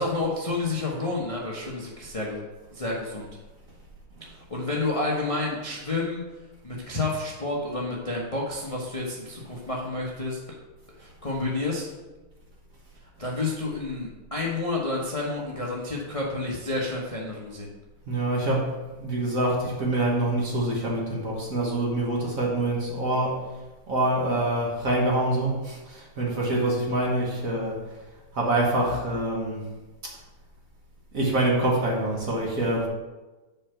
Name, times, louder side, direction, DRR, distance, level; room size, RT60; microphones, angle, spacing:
voice 1, 0.0-2.4 2.7-3.3 4.2-6.2 6.6-10.5 11.0-11.9 13.2-17.7, left 2 dB, 30° left, -3 dB, 0.7 m, -30 dB
voice 2, 18.1-18.7 19.0-23.4 23.9-27.8 28.3-29.7 30.0-30.2 31.1-32.9, right 1 dB, 45° right, -2 dB, 1.4 m, -25 dB
6.8 x 4.9 x 5.8 m, 1.2 s
omnidirectional pair, 2.4 m